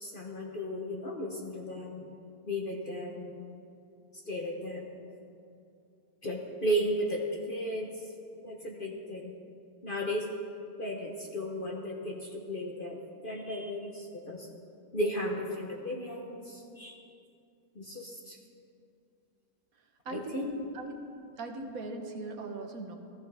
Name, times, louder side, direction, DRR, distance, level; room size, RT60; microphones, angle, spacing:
voice 1, 0.0-2.1 2.5-3.4 4.3-4.9 6.2-7.9 8.4-9.3 9.8-10.3 10.8-14.5 14.9-16.9 17.7-18.4 20.1-20.7, equal, 40° left, 0 dB, 0.9 m, -35 dB
voice 2, 20.0-20.4 20.7-20.9 21.4-23.0, right 3 dB, 65° right, 4 dB, 1.3 m, -39 dB
14.5 x 14.5 x 3.4 m, 2.5 s
omnidirectional pair, 1.7 m